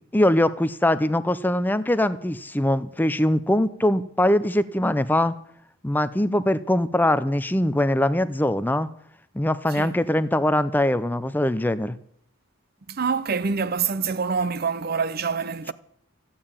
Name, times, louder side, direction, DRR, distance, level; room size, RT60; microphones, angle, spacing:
voice 1, 0.1-5.3 5.8-8.9 9.3-11.9, left 1 dB, 10° left, 0.5 m, -22 dB
voice 2, 12.9-15.7, right 5 dB, 45° right, 0.6 m, -26 dB
14.5 x 8.6 x 8.9 m
head